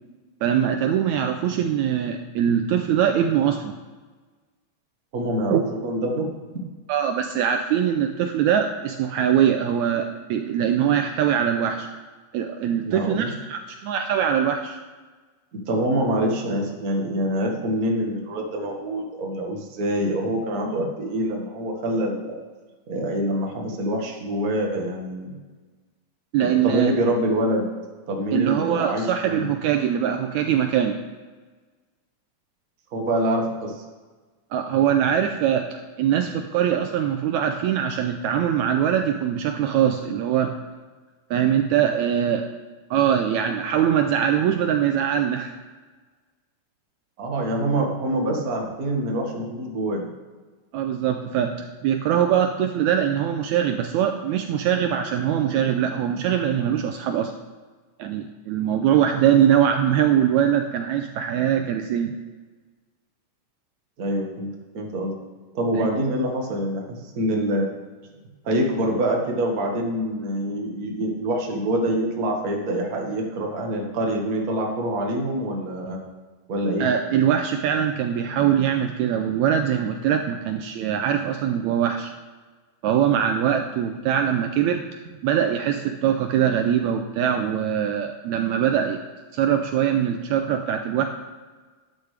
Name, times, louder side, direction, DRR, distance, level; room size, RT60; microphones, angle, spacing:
voice 1, 0.4-3.7 5.5-5.6 6.9-11.9 12.3-14.8 26.3-26.9 28.3-31.0 34.5-40.6 41.3-42.4 42.9-45.5 50.7-57.3 58.0-62.1 65.8-65.9 76.8-82.1 82.8-84.8 85.2-89.0 89.3-91.1, right 9 dB, 80° right, 5 dB, 1.8 m, -22 dB
voice 2, 5.1-6.3 12.9-13.3 15.5-22.4 22.9-25.3 26.4-27.7 28.1-29.5 32.9-33.8 47.2-50.0 64.0-64.5 64.7-65.2 65.5-67.7 68.4-76.0 76.5-76.9, right 1 dB, 40° right, 0 dB, 1.5 m, -25 dB
12.0 x 10.5 x 3.3 m, 1.4 s
omnidirectional pair, 3.7 m